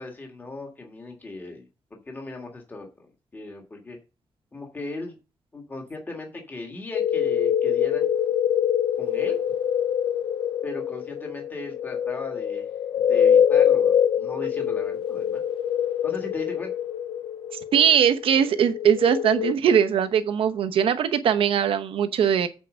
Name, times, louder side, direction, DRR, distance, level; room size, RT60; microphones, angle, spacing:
voice 1, 0.0-4.0 4.5-5.2 5.5-8.1 9.0-9.4 10.6-12.7 13.1-15.4 16.0-16.7, left 2 dB, 20° left, 1.7 m, -38 dB
sound 1, 6.9-19.5, left 9 dB, 85° left, 0.6 m, -24 dB
voice 2, 17.7-22.5, right 8 dB, 85° right, 0.9 m, -20 dB
8.3 x 4.7 x 6.2 m
wide cardioid pair, 180°, 9 cm